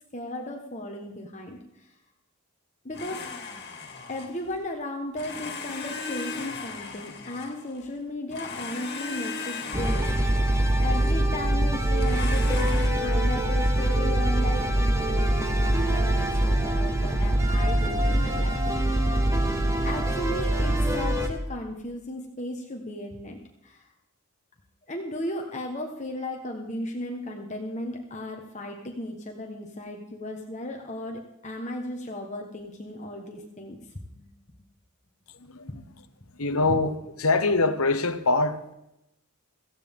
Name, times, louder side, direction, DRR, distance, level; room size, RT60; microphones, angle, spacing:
voice 1, 0.1-1.6 2.8-3.2 4.1-10.4 10.8-18.6 18.9-19.3 19.8-23.4 23.6-23.8 24.9-33.8 34.1-34.2 35.7-35.9 36.2-36.3 36.7-36.8, left 1 dB, 35° left, 1.3 m, -35 dB
Domestic sounds home sounds, 2.9-4.6 5.1-7.9 8.3-11.3 12.0-12.9, left 4 dB, 50° left, 2.3 m, -37 dB
sound 1, 9.7-21.3, right 1 dB, 15° right, 1.5 m, -24 dB
voice 2, 36.4-38.7, left 3 dB, 80° left, 1.2 m, -24 dB
17.5 x 15.0 x 3.7 m
head